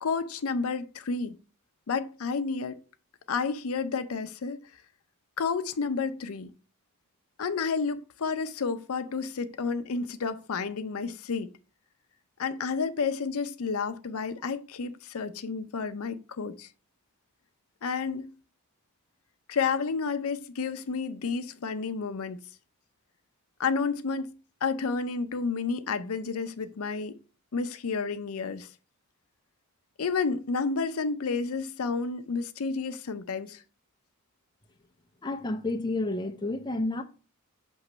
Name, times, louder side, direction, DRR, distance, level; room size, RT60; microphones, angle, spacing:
voice 1, 0.0-1.4 1.9-2.8 3.3-4.6 5.4-6.5 7.4-11.5 12.4-16.7 17.8-18.3 19.5-22.4 23.6-24.3 24.6-27.2 27.5-28.7 30.0-33.6, left 5 dB, 70° left, 0.5 m, -30 dB
voice 2, 35.2-37.0, left 2 dB, 20° left, 0.5 m, -30 dB
6.3 x 3.0 x 5.4 m
head